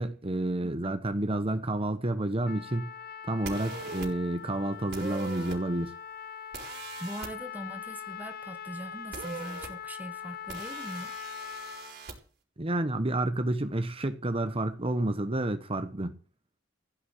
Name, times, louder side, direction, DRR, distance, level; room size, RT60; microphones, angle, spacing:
voice 1, 0.0-2.9 3.3-5.9 12.6-16.1, right 1 dB, 30° right, 1.1 m, -30 dB
voice 2, 0.6-1.0 7.0-11.1, right 1 dB, 10° right, 1.3 m, -41 dB
Trumpet, 2.4-11.9, left 8 dB, 50° left, 1.1 m, -42 dB
sound 1, 3.4-4.1 4.9-5.6 6.5-7.3 9.1-9.7 10.5-12.1, right 4 dB, 60° right, 5.0 m, -40 dB
15.5 x 6.1 x 9.9 m
head